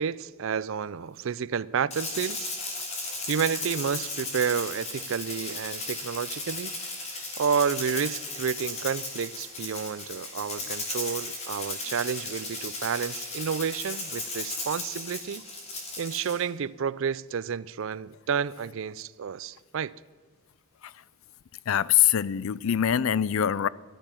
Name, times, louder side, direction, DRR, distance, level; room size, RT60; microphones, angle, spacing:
voice 1, 0.0-2.5 3.3-6.7 7.4-15.4 16.0-19.9, right 7 dB, 60° right, 0.4 m, -30 dB
Rattle (instrument), 1.9-16.4, left 2 dB, 30° left, 2.6 m, -36 dB
voice 2, 21.7-23.7, left 10 dB, 65° left, 0.4 m, -23 dB
13.5 x 13.0 x 5.8 m
head